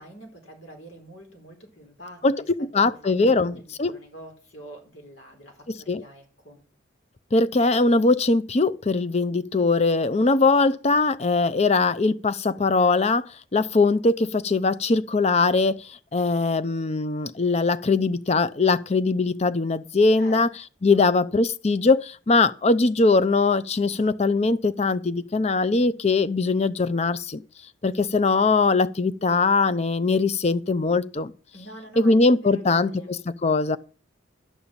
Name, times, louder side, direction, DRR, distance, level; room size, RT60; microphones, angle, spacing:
voice 1, 0.0-2.5 2.7-3.0 3.4-6.6 20.2-20.4 20.9-21.1 31.5-33.2, right 1 dB, 85° left, 4.4 m, -45 dB
voice 2, 2.6-3.9 5.7-6.0 7.3-13.2 13.5-20.5 20.8-27.4 27.8-31.3 32.0-33.8, left 3 dB, 35° left, 0.5 m, -21 dB
12.5 x 5.5 x 8.9 m
head